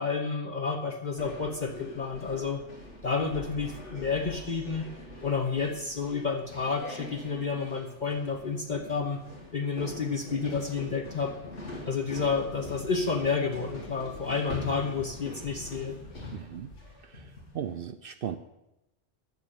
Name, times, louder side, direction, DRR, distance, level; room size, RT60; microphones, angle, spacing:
voice 1, 0.0-2.6 3.0-4.9 5.2-9.2 9.5-11.4 11.9-16.0, left 5 dB, 45° left, 2 dB, 1.0 m, -30 dB
sound 1, 1.2-17.7, left 2 dB, 85° left, 2.4 m, -43 dB
voice 2, 16.3-16.7 17.0-18.4, right 9 dB, 60° right, 10 dB, 0.7 m, -37 dB
10.5 x 6.8 x 7.0 m, 0.90 s
omnidirectional pair, 1.2 m